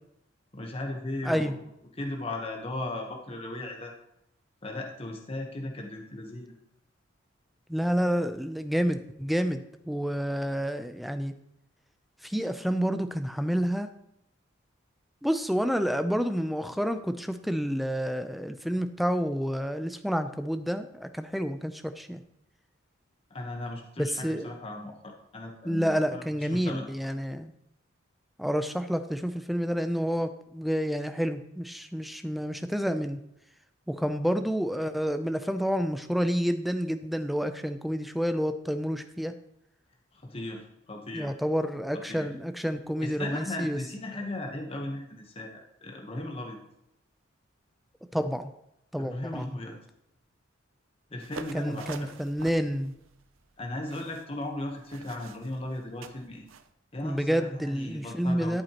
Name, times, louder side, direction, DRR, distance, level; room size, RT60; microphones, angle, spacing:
voice 1, 0.5-1.6 2.0-3.9 4.6-6.5 23.3-26.9 40.1-41.3 41.9-42.3 43.0-46.6 49.0-49.8 51.1-52.1 53.6-56.5 56.9-58.6, left 1 dB, 30° left, 1 dB, 1.0 m, -37 dB
voice 2, 7.7-11.3 12.2-13.9 15.2-22.2 24.0-24.5 25.6-27.5 28.4-33.2 33.9-39.3 41.1-43.8 48.1-48.5 48.9-49.5 51.5-52.9 57.0-58.6, equal, ahead, 9 dB, 0.4 m, -29 dB
sound 1, 51.2-56.7, right 5 dB, 75° right, 0.6 m, -47 dB
13.5 x 7.9 x 2.9 m, 0.80 s
head